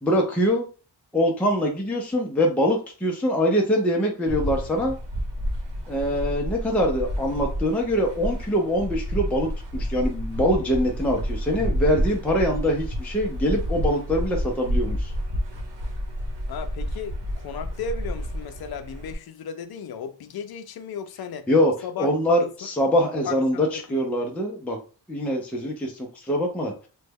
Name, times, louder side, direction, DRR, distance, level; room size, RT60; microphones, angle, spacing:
voice 1, 0.0-0.7 1.1-4.9 5.9-15.1 21.5-21.7 22.0-24.8 25.1-26.9, equal, 5° left, 0.4 m, -23 dB
sound 1, 4.3-19.2, equal, 75° right, 1.0 m, -30 dB
voice 2, 16.5-21.5 21.8-22.1 22.4-22.5 23.2-23.4 23.7-24.0, left 6 dB, 60° left, 0.5 m, -35 dB
3.1 x 2.2 x 3.4 m
wide cardioid pair, 155°, 43 cm